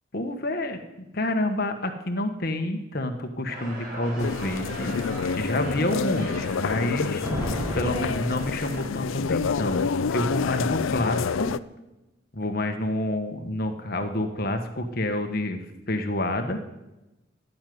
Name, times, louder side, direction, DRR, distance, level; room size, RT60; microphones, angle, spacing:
voice 1, 0.1-0.8 1.1-4.9 5.4-7.2 7.7-11.5 12.3-15.6 15.9-16.6, left 1 dB, 50° left, 6 dB, 1.5 m, -28 dB
sound 1, 3.5-8.8, right 2 dB, 45° right, 6.6 m, -40 dB
sound 2, 4.2-11.6, left 5 dB, 85° left, 0.5 m, -28 dB
Thunder, 7.2-9.4, equal, 15° right, 3.7 m, -33 dB
12.5 x 8.6 x 9.6 m, 1.0 s
head